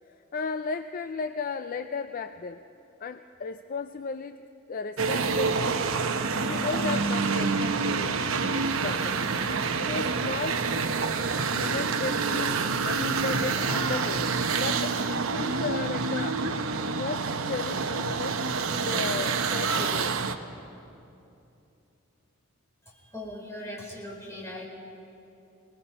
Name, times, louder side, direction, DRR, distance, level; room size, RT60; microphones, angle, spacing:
voice 1, 0.3-2.6 3.0-5.8 6.4-9.3 9.8-10.7 11.5-12.6 12.8-14.3 14.6-16.4 16.7-20.1, left 4 dB, 40° left, 9 dB, 0.4 m, -35 dB
sound 1, 5.0-20.4, right 4 dB, 70° right, 0.9 m, -27 dB
voice 2, 23.1-24.6, left 1 dB, 15° left, -4 dB, 5.2 m, -39 dB
27.0 x 20.0 x 5.6 m, 2.8 s
head